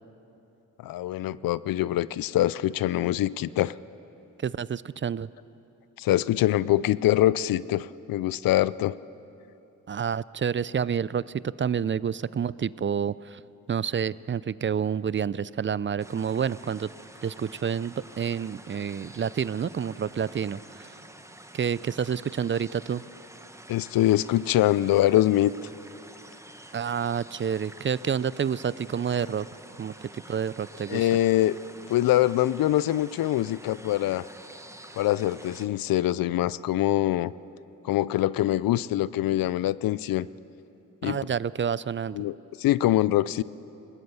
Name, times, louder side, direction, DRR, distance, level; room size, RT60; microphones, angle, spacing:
voice 1, 0.8-3.8 6.0-9.0 23.7-25.5 30.9-31.5 31.9-34.3 35.0-37.3 37.8-40.3 41.0-41.2 42.1-43.4, left 14 dB, 85° left, 19 dB, 0.5 m, -24 dB
voice 2, 4.4-5.3 9.9-13.4 13.7-16.9 17.2-20.9 21.5-23.0 26.7-29.5 29.8-29.9 30.3-31.1 41.0-42.2, right 7 dB, 35° right, 19 dB, 0.4 m, -29 dB
sound 1, 16.0-35.7, right 1 dB, 10° right, 1.1 m, -48 dB
21.0 x 17.5 x 7.0 m, 2.9 s
cardioid pair, 55°, 34 cm